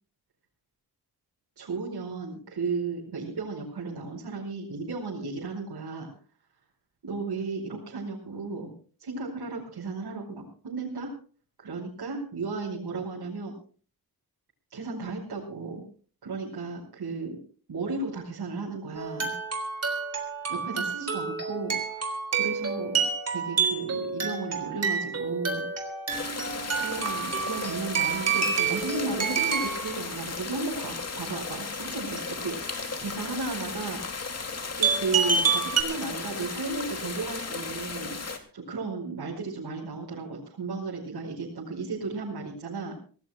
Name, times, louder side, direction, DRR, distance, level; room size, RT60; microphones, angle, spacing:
voice 1, 1.6-6.1 7.0-8.7 9.0-11.1 11.6-13.5 14.7-15.8 16.2-17.4 17.7-19.3 20.5-23.0 23.3-25.6 26.4-34.0 34.8-43.0, right 4 dB, 85° right, -4 dB, 4.9 m, -34 dB
sound 1, 19.0-29.9 34.8-35.8, right 6 dB, 40° right, 3.6 m, -28 dB
sound 2, 26.1-38.4, left 4 dB, 40° left, 2.4 m, -35 dB
25.5 x 18.0 x 2.2 m, 0.41 s
wide cardioid pair, 150°, 38 cm